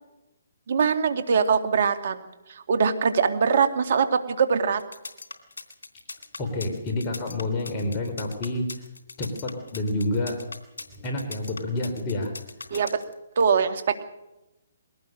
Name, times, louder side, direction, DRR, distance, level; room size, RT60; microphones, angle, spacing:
voice 1, 0.7-2.2 2.5-4.8 12.7-13.0 13.4-14.0, right 6 dB, 55° right, 9 dB, 2.5 m, -22 dB
sound 1, 4.8-13.1, left 3 dB, 80° left, 3.4 m, -40 dB
voice 2, 6.4-8.7 9.2-10.4 10.9-12.3 12.7-12.8, left 2 dB, 25° left, 2 dB, 4.0 m, -28 dB
22.0 x 18.0 x 6.6 m, 0.93 s
hypercardioid pair, 145°, 0 cm